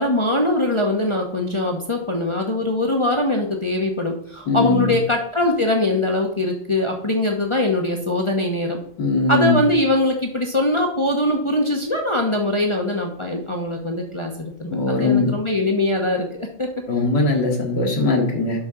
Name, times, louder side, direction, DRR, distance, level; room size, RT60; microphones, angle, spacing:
voice 1, 0.0-8.8 9.3-16.7, left 1 dB, 30° left, 1 dB, 0.5 m, -22 dB
voice 2, 4.5-4.9 9.0-9.6 14.7-15.3 16.9-18.6, left 3 dB, 65° left, 0 dB, 2.2 m, -20 dB
11.5 x 5.9 x 3.7 m, 0.68 s
omnidirectional pair, 2.1 m